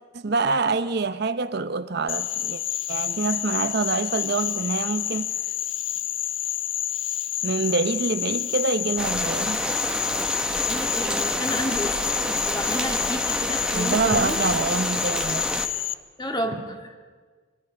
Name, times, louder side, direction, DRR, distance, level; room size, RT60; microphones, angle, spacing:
voice 1, 0.1-2.6 2.9-5.3 7.4-9.7 13.7-15.4, right 4 dB, 60° right, 0.7 m, -26 dB
Frog, 2.1-15.9, left 12 dB, 80° left, 0.7 m, -29 dB
sound 1, 9.0-15.7, right 1 dB, 5° right, 1.0 m, -28 dB
voice 2, 10.7-14.4 16.2-17.0, equal, 25° left, 2.1 m, -31 dB
24.5 x 24.0 x 5.3 m
head